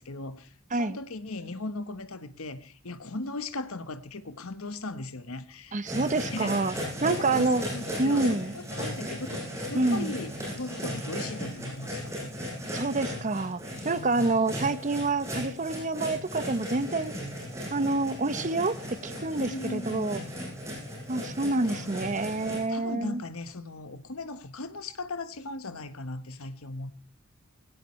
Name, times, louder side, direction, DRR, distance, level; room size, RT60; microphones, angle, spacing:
voice 1, 0.0-5.9 6.3-8.4 8.7-12.1 13.7-14.3 19.4-20.3 21.7-22.0 22.4-26.9, left 2 dB, 75° left, 11 dB, 1.2 m, -38 dB
voice 2, 5.7-6.7 7.0-7.6 8.0-8.5 9.7-10.1 12.7-17.1 17.7-18.8 19.0-20.2 21.1-23.2, right 2 dB, 35° right, 13 dB, 0.8 m, -27 dB
sound 1, 5.8-22.6, equal, 15° right, 7.0 m, -36 dB
18.5 x 17.0 x 3.2 m, 0.40 s
head